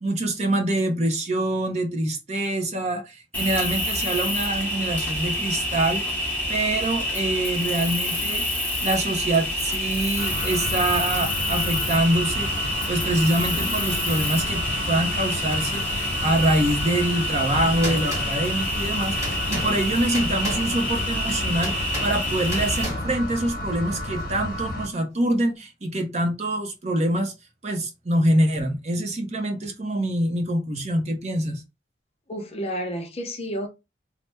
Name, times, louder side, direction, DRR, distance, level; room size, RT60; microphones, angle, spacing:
voice 1, 0.0-27.3 27.6-31.6, right 1 dB, 35° right, 0.6 m, -25 dB
Cricket, 3.3-22.8, left 1 dB, 10° left, 0.9 m, -27 dB
sound 1, 10.2-24.9, left 1 dB, 50° left, 1.0 m, -32 dB
sound 2, 17.3-24.7, equal, 15° right, 1.1 m, -36 dB
voice 2, 32.3-33.7, equal, 35° left, 0.6 m, -30 dB
3.1 x 2.1 x 3.2 m
head